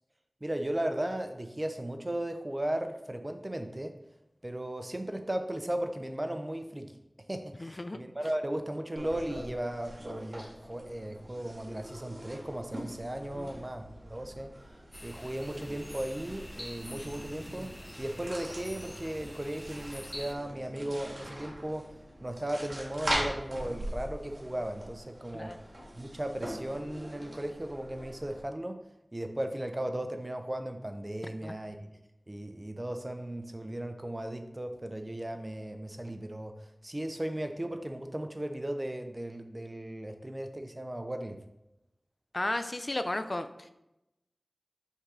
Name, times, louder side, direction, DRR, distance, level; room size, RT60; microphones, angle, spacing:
voice 1, 0.4-4.0 4.4-6.9 7.3-14.5 15.0-17.7 18.0-21.9 22.2-25.6 26.0-28.8 29.1-31.9 32.3-36.5 36.8-41.4, right 1 dB, 30° right, 6 dB, 0.5 m, -36 dB
voice 2, 7.6-8.0 13.3-13.6 25.3-25.6 31.4-31.5 42.3-43.7, left 2 dB, 45° left, 9 dB, 0.4 m, -34 dB
sound 1, 9.0-28.4, right 1 dB, 65° right, 1.7 m, -42 dB
sound 2, 14.9-20.3, equal, 20° left, 0.8 m, -46 dB
5.4 x 3.7 x 4.8 m, 0.90 s
wide cardioid pair, 55°, 0 cm